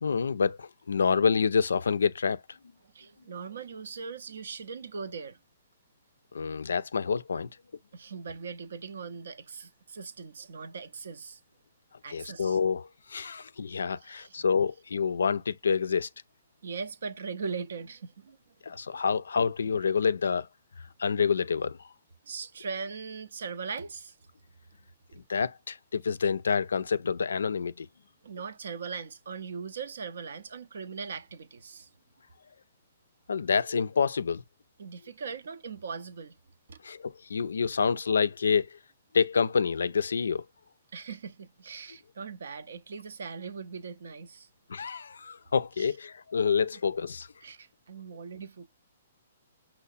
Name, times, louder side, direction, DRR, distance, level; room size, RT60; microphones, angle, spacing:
voice 1, 0.0-2.4 6.3-7.5 12.1-16.1 18.6-20.5 21.0-21.8 25.3-27.9 33.3-34.4 36.8-38.8 39.1-40.4 44.7-47.3, left 5 dB, 85° left, 0.3 m, -27 dB
voice 2, 2.8-5.4 7.9-11.4 12.0-12.6 14.0-14.4 16.6-18.6 18.9-19.0 22.3-24.2 28.2-31.9 34.8-36.4 36.7-36.8 40.9-44.5 45.8-45.9 47.4-48.7, right 5 dB, 75° right, 0.5 m, -40 dB
5.5 x 2.0 x 2.4 m
hypercardioid pair, 140°, 0 cm